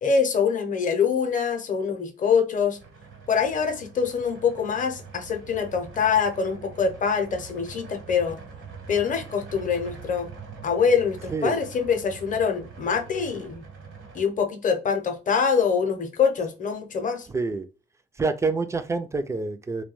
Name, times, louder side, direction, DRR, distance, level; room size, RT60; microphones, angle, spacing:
voice 1, 0.0-2.8 3.3-8.4 8.9-10.3 10.6-13.6 14.1-17.3, left 6 dB, 40° left, 0.6 m, -24 dB
sound 1, 2.7-14.2, right 5 dB, 75° right, 1.0 m, -44 dB
voice 2, 11.3-11.6 17.3-17.7 18.2-19.8, right 3 dB, 15° right, 0.3 m, -27 dB
2.2 x 2.2 x 3.0 m
cardioid pair, 90°, 20 cm